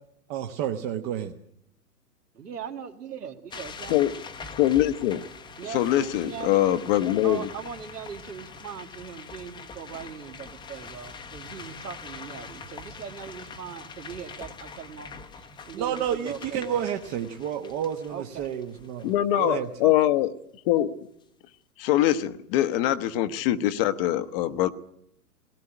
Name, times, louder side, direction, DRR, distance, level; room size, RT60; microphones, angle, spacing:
voice 1, 0.3-1.3 15.7-19.1 19.4-19.7, right 9 dB, 35° right, 4 dB, 1.2 m, -30 dB
voice 2, 2.3-4.0 5.6-6.6 7.2-16.9 18.1-18.5 19.5-20.0, right 7 dB, 85° right, 7 dB, 2.2 m, -40 dB
Rockfall in mine, 3.5-19.4, left 4 dB, 10° left, 0.9 m, -43 dB
voice 3, 4.6-5.2 5.7-7.5 19.0-20.3 20.6-21.0 21.8-24.7, left 13 dB, 40° left, 11 dB, 1.0 m, -23 dB
18.5 x 18.0 x 10.0 m, 0.76 s
hypercardioid pair, 125°, 46 cm